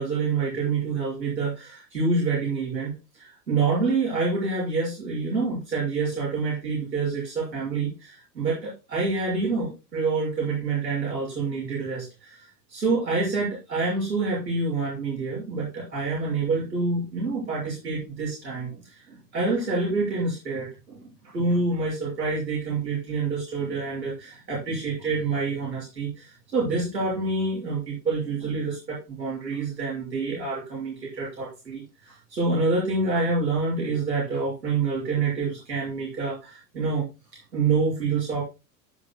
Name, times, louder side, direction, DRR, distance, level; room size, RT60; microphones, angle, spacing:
voice 1, 0.0-37.0 37.3-38.4, right 4 dB, 90° right, -6 dB, 5.4 m, -27 dB
17.0 x 5.8 x 2.3 m, 0.29 s
hypercardioid pair, 85°, 49 cm